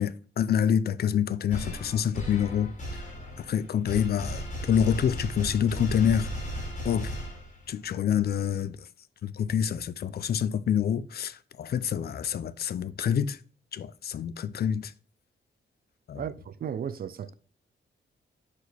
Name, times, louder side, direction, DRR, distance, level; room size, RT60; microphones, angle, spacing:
voice 1, 0.0-3.0 3.4-6.3 6.8-7.1 7.7-8.9 9.2-13.4 13.7-14.9 16.1-16.2, left 8 dB, 55° left, 0.5 m, -27 dB
sound 1, 1.5-7.8, equal, 35° left, 2.4 m, -36 dB
voice 2, 16.1-17.3, right 8 dB, 50° right, 0.5 m, -35 dB
6.1 x 4.8 x 3.3 m
wide cardioid pair, 150°, 20 cm